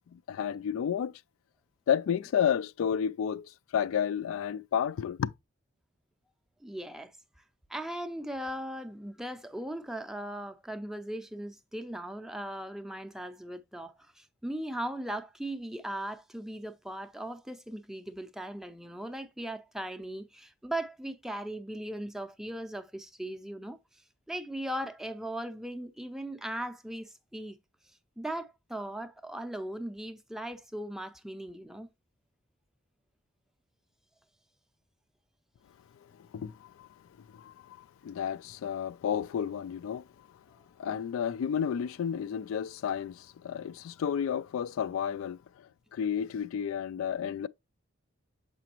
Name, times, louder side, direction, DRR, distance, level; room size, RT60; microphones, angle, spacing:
voice 1, 0.1-1.1 1.9-5.3 36.2-36.9 37.3-40.0 40.8-47.5, left 8 dB, 85° left, 0.3 m, -31 dB
voice 2, 6.6-7.2 7.7-27.6 28.2-31.9, right 1 dB, ahead, 0.4 m, -38 dB
6.6 x 5.0 x 2.9 m
head